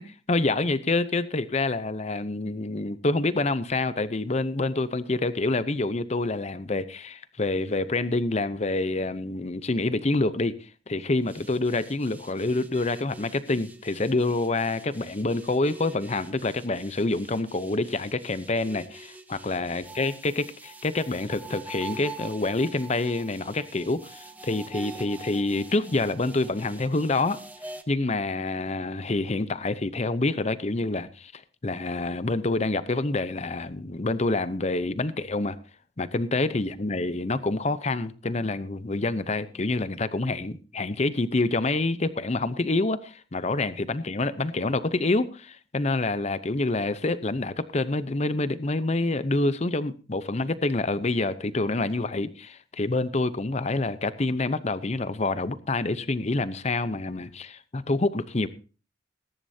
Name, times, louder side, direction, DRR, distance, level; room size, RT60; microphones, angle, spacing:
voice 1, 0.0-10.5 10.9-27.4 27.9-35.6 36.0-58.5, left 2 dB, 35° left, 0.7 m, -27 dB
sound 1, 11.3-27.8, right 2 dB, 10° right, 1.1 m, -45 dB
20.5 x 11.0 x 2.8 m
head